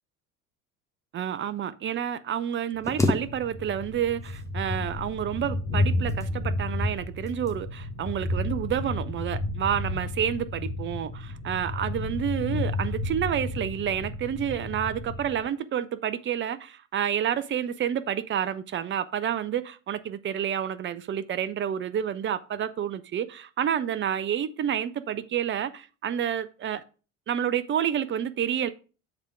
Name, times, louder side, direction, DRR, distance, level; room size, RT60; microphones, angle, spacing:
voice 1, 1.1-26.8 27.3-28.7, right 9 dB, 30° right, 0.6 m, -29 dB
Thunder, 2.8-15.4, left 1 dB, 75° left, 1.8 m, -32 dB
sound 1, 2.8-3.9 4.2-4.9 5.8-6.6 7.3-7.6 8.0-8.3, left 2 dB, 5° left, 1.1 m, -30 dB
7.3 x 3.6 x 4.9 m
figure-of-eight pair, 60°, 43 cm